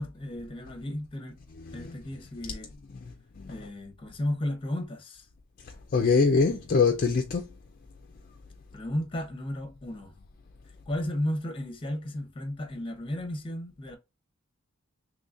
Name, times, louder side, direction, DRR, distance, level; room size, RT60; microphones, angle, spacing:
voice 1, 0.0-1.4 1.7-2.7 3.5-5.3 6.5-6.7 8.7-10.1 10.9-14.0, left 1 dB, 25° left, 0.9 m, -34 dB
voice 2, 1.6-1.9 2.5-2.6 3.4-3.6 5.9-7.5, left 4 dB, 45° left, 0.4 m, -24 dB
3.8 x 3.2 x 2.5 m
head